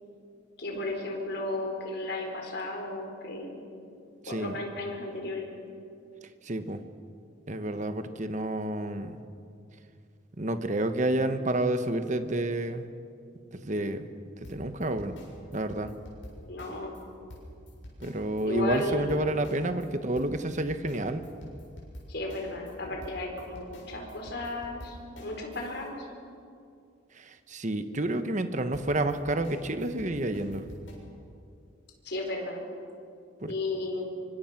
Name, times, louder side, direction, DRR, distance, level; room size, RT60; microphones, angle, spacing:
voice 1, 0.6-3.6 4.3-5.5 16.4-17.0 18.5-19.3 22.1-26.1 32.0-32.6 33.5-34.0, left 2 dB, 55° left, 1 dB, 4.8 m, -34 dB
voice 2, 4.2-4.6 6.4-6.8 7.5-9.2 10.4-12.8 13.5-14.1 14.5-15.1 15.5-15.9 18.0-21.2 27.1-30.6 33.4-33.5, right 1 dB, 40° right, 9 dB, 1.2 m, -29 dB
sound 1, 14.4-17.0 17.3-19.9 20.2-25.9 28.7-30.9, equal, 75° left, 7.1 m, -47 dB
25.5 x 24.5 x 6.0 m, 2.4 s
head